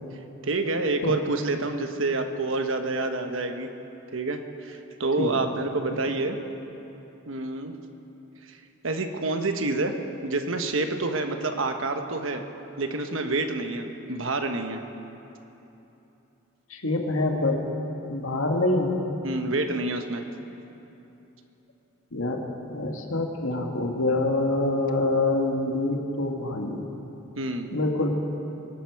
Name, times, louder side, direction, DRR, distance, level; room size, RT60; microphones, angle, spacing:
voice 1, 0.4-3.7 4.1-6.4 7.3-7.7 8.8-9.9 10.2-12.4 12.8-14.8 19.2-20.2 27.4-27.7, right 2 dB, 75° right, 6 dB, 1.1 m, -28 dB
voice 2, 16.7-17.7 18.0-19.0 22.1-26.9 27.7-28.1, left 2 dB, 90° left, 2 dB, 1.7 m, -26 dB
23.0 x 11.5 x 4.8 m, 3.0 s
head